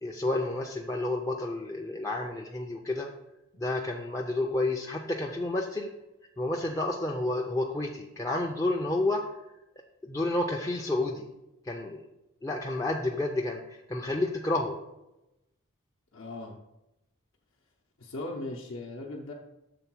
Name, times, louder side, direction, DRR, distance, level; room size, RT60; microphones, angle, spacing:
voice 1, 0.0-3.1 3.6-5.9 6.4-9.2 10.0-11.3 11.6-12.1 12.4-14.8, left 2 dB, 15° left, 0 dB, 0.4 m, -30 dB
voice 2, 16.1-16.6 18.0-19.3, left 2 dB, 65° left, -2 dB, 0.8 m, -38 dB
6.8 x 3.9 x 6.0 m, 0.93 s
head